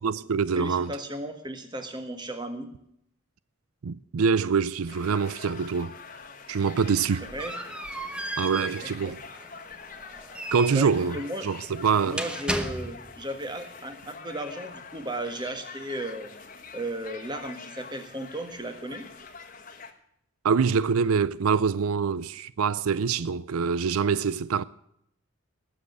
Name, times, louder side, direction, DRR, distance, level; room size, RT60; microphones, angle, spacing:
voice 1, 0.0-0.9 3.8-6.0 6.5-7.2 8.4-9.2 10.5-11.2 11.4-12.2 20.4-24.6, right 5 dB, 85° right, 0.5 m, -25 dB
voice 2, 0.6-2.7 7.3-7.5 9.0-9.2 10.7-11.5 12.0-16.3 16.7-19.1, right 1 dB, 20° right, 1.7 m, -35 dB
sound 1, 4.9-19.9, left 5 dB, 40° left, 1.5 m, -45 dB
sound 2, 6.6-13.3, right 1 dB, 5° right, 0.9 m, -36 dB
19.0 x 7.6 x 8.0 m
head